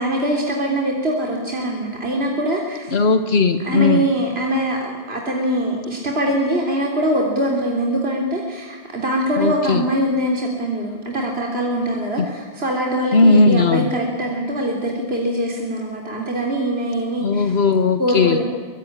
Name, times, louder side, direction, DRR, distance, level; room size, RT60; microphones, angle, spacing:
voice 1, 0.0-2.9 3.6-17.5 18.0-18.4, right 1 dB, 80° right, 0 dB, 3.6 m, -23 dB
voice 2, 2.9-4.0 9.4-9.8 13.1-13.9 17.2-18.4, left 3 dB, 80° left, 9 dB, 1.5 m, -17 dB
24.5 x 23.5 x 9.9 m, 1.5 s
omnidirectional pair, 1.0 m